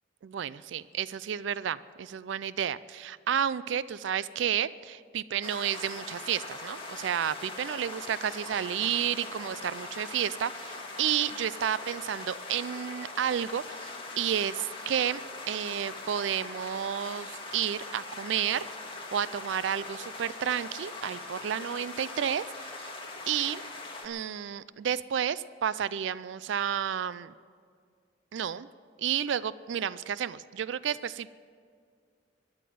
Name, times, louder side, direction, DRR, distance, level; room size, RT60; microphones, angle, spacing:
voice 1, 0.2-15.2 15.5-18.7 19.1-22.9 23.3-23.6 24.0-27.3 28.3-28.7 29.0-31.3, right 9 dB, 65° right, 17 dB, 0.4 m, -31 dB
sound 1, 5.4-24.1, left 3 dB, 30° left, 1.8 m, -41 dB
12.5 x 11.0 x 9.3 m, 2.1 s
head